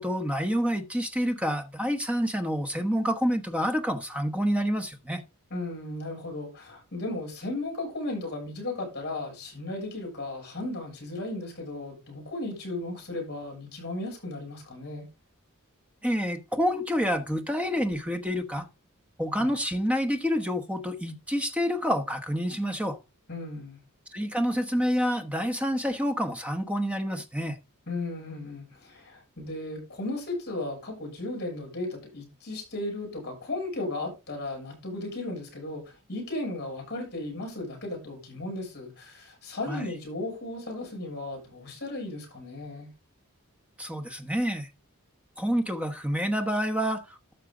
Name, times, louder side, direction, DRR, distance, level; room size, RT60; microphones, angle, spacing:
voice 1, 0.0-5.2 16.0-18.7 19.2-23.0 24.1-27.6 39.7-39.8 43.8-44.7 45.4-47.3, equal, 5° right, 1.1 m, -28 dB
voice 2, 5.5-15.0 19.4-19.5 23.3-23.8 27.9-42.9, left 2 dB, 45° left, 7.7 m, -35 dB
13.0 x 6.6 x 3.8 m
head